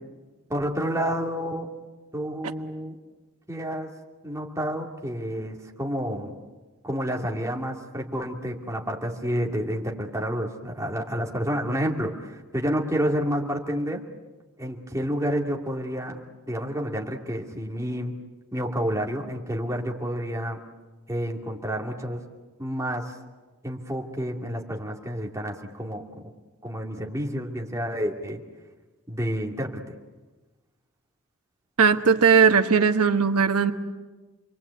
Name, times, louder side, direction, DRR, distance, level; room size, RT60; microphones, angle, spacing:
voice 1, 0.5-1.7 2.1-3.0 3.5-3.9 4.2-6.4 6.8-14.0 14.6-16.2 16.5-18.2 18.5-20.6 21.1-22.2 22.6-23.2 23.6-26.3 26.6-28.4 29.1-29.8, equal, 15° right, 0 dB, 2.6 m, -29 dB
voice 2, 31.8-33.7, right 6 dB, 90° right, 7 dB, 1.2 m, -18 dB
28.5 x 22.5 x 8.4 m, 1.2 s
head